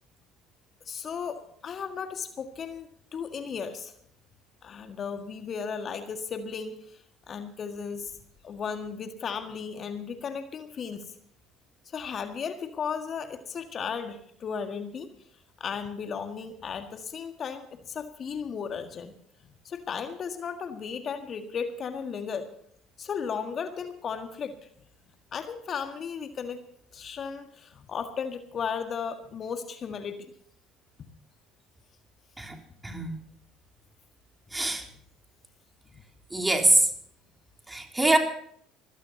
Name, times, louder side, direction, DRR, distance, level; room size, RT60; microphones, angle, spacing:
voice 1, 0.9-3.9 4.6-7.0 7.3-8.1 8.4-11.1 11.9-15.1 15.6-19.1 19.6-22.5 23.0-24.5 25.3-26.6 26.9-30.3 35.9-36.0, left 6 dB, 40° left, 7 dB, 1.8 m, -35 dB
voice 2, 32.8-33.2 34.5-34.8 36.3-36.9 37.7-38.2, right 2 dB, 15° right, 3 dB, 3.4 m, -23 dB
25.5 x 16.5 x 2.8 m, 0.65 s
figure-of-eight pair, 60°, 0 cm